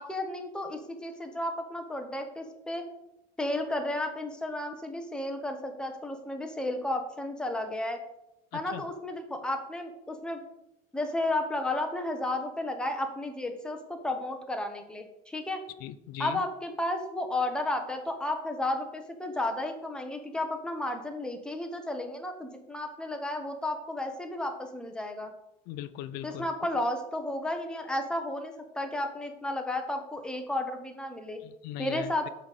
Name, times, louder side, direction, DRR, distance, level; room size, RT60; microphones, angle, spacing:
voice 1, 0.0-2.8 3.4-8.0 8.5-10.4 10.9-15.6 16.2-25.3 26.2-31.4 31.8-32.3, left 1 dB, 5° left, 4 dB, 0.8 m, -33 dB
voice 2, 8.5-8.8 15.8-16.4 25.7-26.5 31.4-32.3, left 12 dB, 65° left, 14 dB, 0.5 m, -39 dB
7.7 x 4.0 x 6.5 m, 0.85 s
cardioid pair, 175°, 17 cm